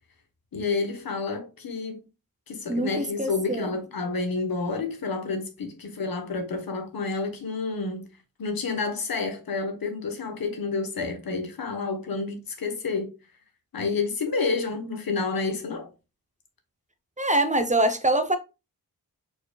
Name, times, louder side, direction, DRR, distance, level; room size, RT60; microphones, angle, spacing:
voice 1, 0.5-2.0 2.5-8.1 8.4-13.1 13.7-15.9, left 4 dB, 75° left, 1.1 m, -29 dB
voice 2, 2.7-3.7 17.2-18.4, right 1 dB, 20° right, 0.6 m, -24 dB
4.5 x 4.3 x 2.3 m
wide cardioid pair, 95°, 36 cm